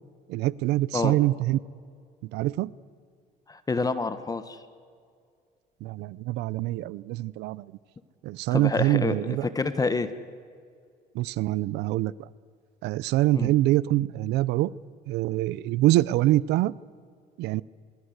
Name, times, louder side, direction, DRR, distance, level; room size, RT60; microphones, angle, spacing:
voice 1, 0.3-1.6 2.3-2.7 5.8-7.6 8.2-9.5 11.1-12.1 12.8-14.7 15.1-16.7 17.4-17.6, right 16 dB, 85° right, 21 dB, 0.7 m, -25 dB
voice 2, 3.5-4.6 8.5-10.1 13.3-13.5, left 3 dB, 20° left, 11 dB, 1.5 m, -28 dB
25.5 x 22.0 x 8.1 m, 2.1 s
cardioid pair, 110°, 17 cm